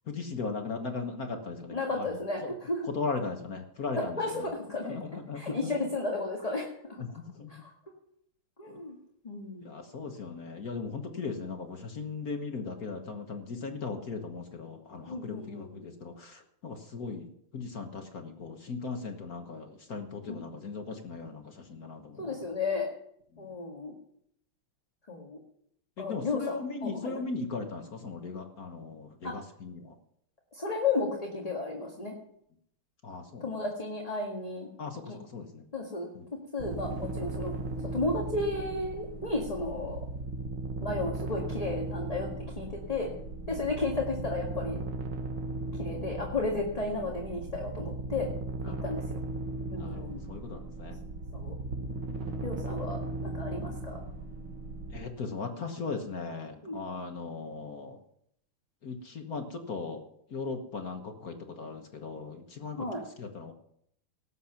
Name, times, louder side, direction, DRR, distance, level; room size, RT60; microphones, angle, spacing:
voice 1, 0.1-2.1 2.4-2.5 2.9-4.5 4.8-5.7 7.1-7.5 8.7-8.8 9.6-22.4 23.3-23.5 26.0-29.9 33.0-33.5 34.8-35.6 36.1-36.3 43.5-43.6 48.6-48.8 49.8-51.0 54.9-58.0 58.8-60.0 60.3-62.9 63.2-63.5, left 4 dB, 45° left, 4 dB, 1.6 m, -38 dB
voice 2, 1.7-2.9 3.9-5.0 5.3-7.0 7.5-7.7 8.6-9.0 9.2-9.7 15.1-15.9 20.3-20.4 22.2-22.9 23.4-23.9 25.1-25.4 26.0-27.2 29.2-29.3 30.5-32.2 33.4-34.7 35.1-35.2 35.7-37.6 37.9-40.0 40.8-42.3 42.6-43.1 43.5-44.8 45.7-48.3 48.6-49.2 49.7-50.2 51.3-51.6 52.4-54.0 56.6-56.8 62.8-63.0, left 3 dB, 20° left, -1 dB, 1.8 m, -33 dB
sound 1, 36.6-55.0, right 2 dB, 65° right, 2.4 m, -37 dB
18.5 x 8.1 x 5.9 m, 0.71 s
omnidirectional pair, 2.4 m